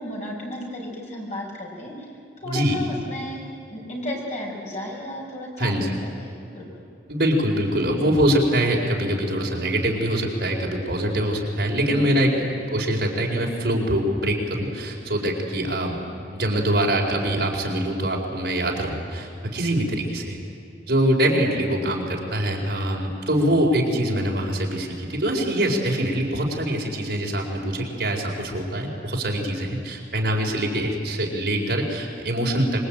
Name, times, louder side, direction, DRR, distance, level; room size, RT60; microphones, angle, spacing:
voice 1, 0.0-2.1 2.4-6.6 11.8-12.5 21.3-21.6, left 1 dB, 40° left, -2 dB, 6.0 m, -34 dB
voice 2, 2.4-2.8 5.6-6.0 7.1-16.0 16.3-20.4 20.9-32.9, right 1 dB, 60° right, -1 dB, 4.5 m, -24 dB
25.5 x 22.5 x 8.9 m, 2.6 s
head